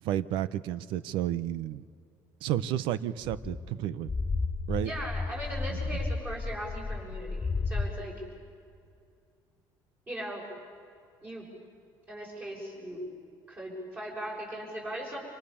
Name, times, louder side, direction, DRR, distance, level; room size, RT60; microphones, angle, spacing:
voice 1, 0.0-1.8 2.4-4.1 4.7-4.9 5.7-5.8, right 12 dB, 80° right, 17 dB, 1.0 m, -31 dB
sound 1, 3.2-7.9, left 3 dB, 15° left, 2.5 m, -33 dB
voice 2, 4.8-8.1 10.1-10.5 11.2-11.5 12.1-13.0 13.5-15.2, right 1 dB, 20° right, -2 dB, 7.2 m, -39 dB
29.0 x 26.5 x 7.2 m, 2.4 s
cardioid pair, 170°, 8 cm